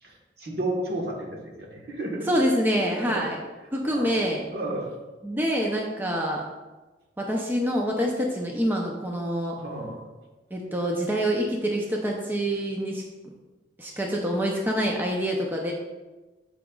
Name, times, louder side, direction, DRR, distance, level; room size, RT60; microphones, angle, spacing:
voice 1, 0.0-2.3 3.0-3.3 3.9-4.1 4.5-4.9 9.6-10.0, right 1 dB, 60° right, -1 dB, 1.3 m, -32 dB
voice 2, 2.3-3.4 3.7-4.5 5.2-6.4 7.2-9.6 10.5-13.0 13.8-15.7, equal, 10° right, -1 dB, 0.6 m, -26 dB
8.7 x 6.2 x 2.3 m, 1.2 s
head